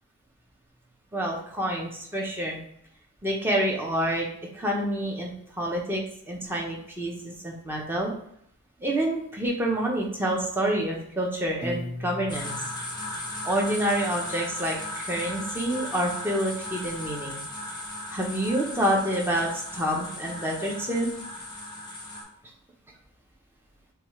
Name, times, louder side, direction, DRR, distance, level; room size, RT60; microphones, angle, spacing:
voice 1, 1.1-2.6 3.2-4.3 4.5-5.3 5.6-8.1 8.8-12.5 13.4-17.4 18.1-21.1, right 1 dB, 10° right, -1 dB, 0.8 m, -28 dB
Piano, 11.6-13.8, left 1 dB, 35° right, 1.5 m, -38 dB
sound 1, 12.3-22.2, left 1 dB, 20° left, 1.0 m, -37 dB
6.5 x 2.4 x 3.2 m, 0.70 s
head